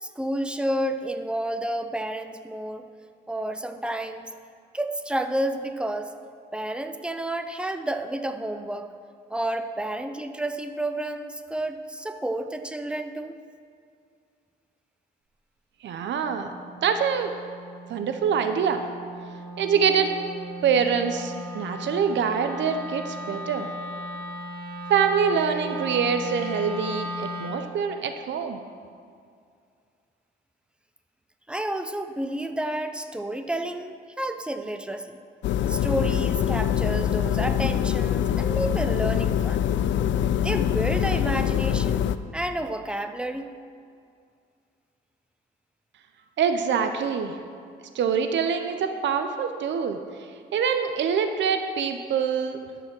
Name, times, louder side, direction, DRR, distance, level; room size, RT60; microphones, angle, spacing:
voice 1, 0.0-2.9 3.3-4.3 4.7-6.1 6.5-9.0 9.3-13.3 31.5-35.2 35.7-39.7 40.2-42.0 42.3-43.5, right 1 dB, 5° right, 7 dB, 0.6 m, -30 dB
voice 2, 15.8-16.5 16.8-17.3 17.9-18.8 19.6-20.1 20.6-23.7 24.9-28.6 46.4-47.4 47.9-50.0 50.5-52.6, right 7 dB, 70° right, 7 dB, 0.7 m, -25 dB
Wind instrument woodwind instrument, 16.1-27.7, equal, 55° right, 1.6 m, -36 dB
sound 1, 35.4-42.2, left 9 dB, 70° left, 0.4 m, -24 dB
12.5 x 5.0 x 6.0 m, 2.3 s
cardioid pair, 90°, 20 cm